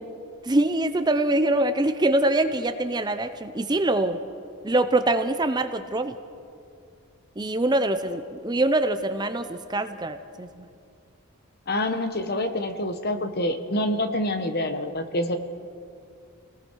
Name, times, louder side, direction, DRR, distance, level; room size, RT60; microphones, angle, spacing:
voice 1, 0.4-4.2 4.6-6.2 7.4-10.7, right 2 dB, 20° right, 9 dB, 0.6 m, -24 dB
voice 2, 11.7-15.4, left 1 dB, 45° left, 8 dB, 1.2 m, -26 dB
29.5 x 19.0 x 4.6 m, 2.4 s
head